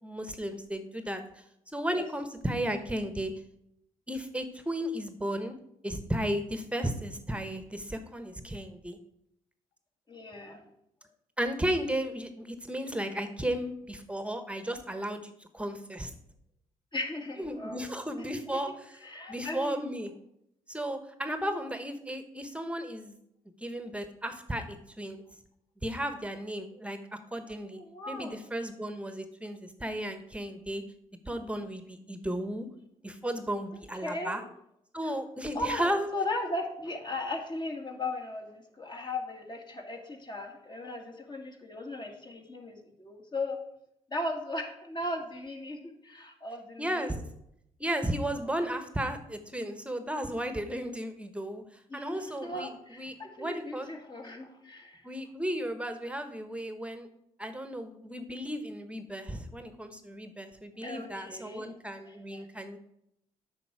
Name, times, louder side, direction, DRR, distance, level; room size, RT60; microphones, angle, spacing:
voice 1, 0.0-1.4 1.7-3.3 4.1-5.6 5.8-9.0 11.4-16.1 17.4-19.0 19.3-20.1 20.7-23.2 23.6-25.2 25.8-27.0 27.3-27.8 28.1-30.8 31.3-32.7 33.0-34.4 34.9-36.1 46.8-47.2 47.8-53.9 55.0-57.1 57.4-62.8, right 1 dB, 10° right, 8 dB, 1.2 m, -34 dB
voice 2, 10.1-10.7 16.9-17.8 18.3-18.6 19.0-19.9 27.7-28.4 34.0-34.4 35.0-35.1 35.5-43.6 44.1-47.2 48.4-48.5 51.9-55.0 60.8-61.7 62.0-62.5, left 2 dB, 30° left, 3 dB, 1.9 m, -37 dB
8.5 x 5.6 x 4.8 m, 0.77 s
supercardioid pair, 55°, 14 cm